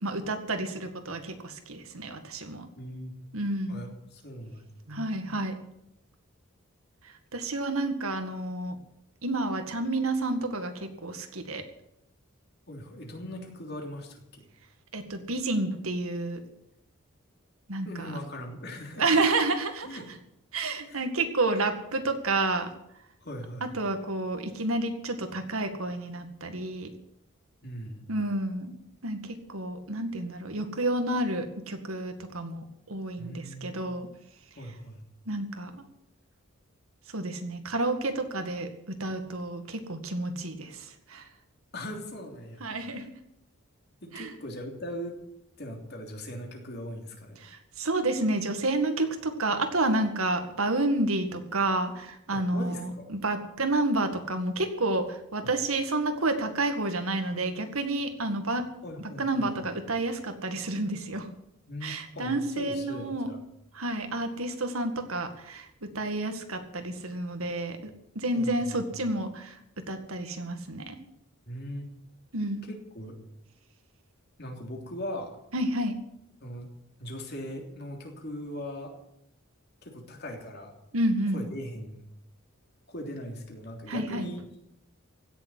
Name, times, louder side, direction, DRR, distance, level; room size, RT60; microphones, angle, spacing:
voice 1, 0.0-2.7 3.3-3.8 4.9-5.5 7.3-8.8 9.2-11.6 14.9-16.4 17.7-18.1 19.0-20.0 20.5-22.7 23.6-26.9 28.1-28.7 29.0-34.1 35.3-35.8 37.1-41.2 42.6-43.1 44.1-44.3 47.4-58.6 59.2-61.3 61.8-63.4 63.7-67.8 68.2-69.6 69.9-71.0 72.3-72.7 75.5-76.0 80.9-81.4 83.9-84.3, right 2 dB, 80° right, 7 dB, 2.0 m, -30 dB
voice 2, 2.7-3.1 3.7-4.6 12.7-14.4 17.8-19.1 19.8-20.1 20.9-21.0 23.2-23.7 27.6-28.0 33.2-33.8 34.6-35.0 41.7-43.0 44.0-45.2 45.6-47.4 52.3-53.1 55.4-55.5 58.8-59.7 61.7-63.4 68.3-68.8 71.5-71.9 72.6-73.2 74.4-75.3 76.4-76.7 77.0-78.9 79.8-80.7 81.3-82.0 82.9-84.4, equal, 50° left, 2 dB, 3.2 m, -40 dB
16.5 x 7.2 x 9.6 m, 0.77 s
head